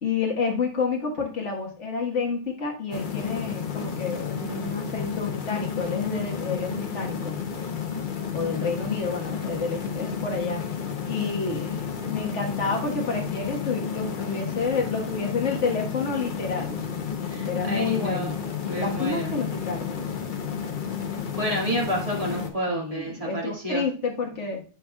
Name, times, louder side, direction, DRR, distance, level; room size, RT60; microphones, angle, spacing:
voice 1, 0.0-7.4 8.3-10.6 11.1-11.8 12.1-16.8 17.4-18.4 18.7-19.9 22.7-24.6, left 4 dB, 75° left, 1 dB, 1.7 m, -29 dB
sound 1, 2.9-22.5, left 7 dB, 45° left, 0.9 m, -31 dB
voice 2, 17.3-18.3 18.6-19.3 21.3-23.8, equal, 30° right, -2 dB, 2.0 m, -29 dB
9.0 x 5.9 x 2.3 m, 0.36 s
omnidirectional pair, 1.2 m